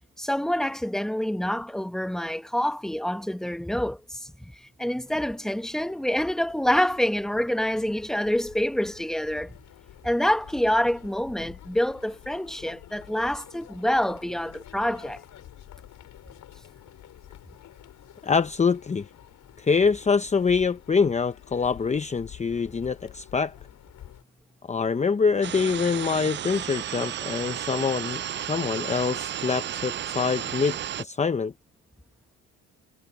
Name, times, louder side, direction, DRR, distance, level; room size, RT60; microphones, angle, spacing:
voice 1, 0.2-4.5 4.8-9.6 10.0-15.2, equal, ahead, 1.4 m, -27 dB
sound 1, 5.1-24.2, left 12 dB, 70° left, 6.0 m, -49 dB
voice 2, 18.2-19.1 19.6-23.5 24.6-31.5, left 5 dB, 20° left, 0.8 m, -25 dB
sound 2, 25.4-31.0, right 10 dB, 35° right, 0.4 m, -33 dB
cardioid pair, 95°, 32 cm